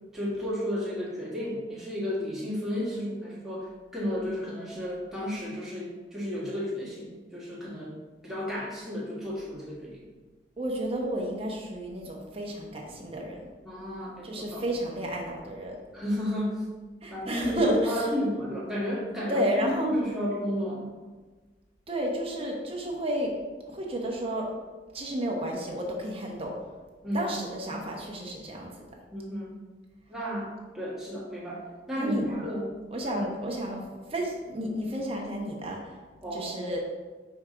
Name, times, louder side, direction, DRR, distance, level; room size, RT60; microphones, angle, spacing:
voice 1, 0.1-3.7 3.9-7.9 8.2-10.0 13.6-14.6 15.9-16.6 17.1-21.0 27.0-27.3 29.1-29.5 30.1-31.6 31.9-32.7 33.1-33.3 33.7-33.8 36.2-36.5, equal, 5° right, -7 dB, 1.7 m, -32 dB
voice 2, 10.6-13.4 14.2-15.8 17.0-18.1 19.3-19.9 21.9-23.3 23.7-24.5 24.9-26.6 27.1-28.9 32.0-32.4 32.9-36.0 36.3-36.8, equal, 35° right, -1 dB, 1.1 m, -31 dB
5.1 x 4.9 x 3.9 m, 1.3 s
head